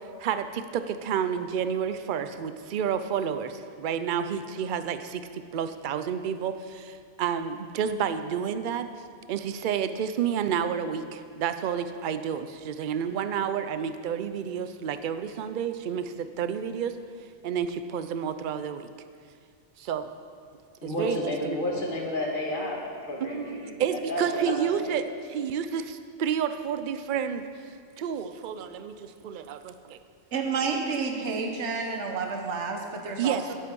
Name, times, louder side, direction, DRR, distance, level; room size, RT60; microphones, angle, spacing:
voice 1, 0.2-8.9 9.3-17.0 17.4-18.9 19.8-20.1 20.8-21.6 23.2-30.0 33.2-33.5, right 8 dB, 55° right, 10 dB, 0.6 m, -30 dB
voice 2, 20.8-24.9, left 1 dB, 45° left, -1 dB, 1.7 m, -31 dB
voice 3, 30.3-33.4, right 4 dB, 70° right, 3 dB, 1.3 m, -30 dB
11.0 x 8.3 x 5.3 m, 2.2 s
omnidirectional pair, 1.2 m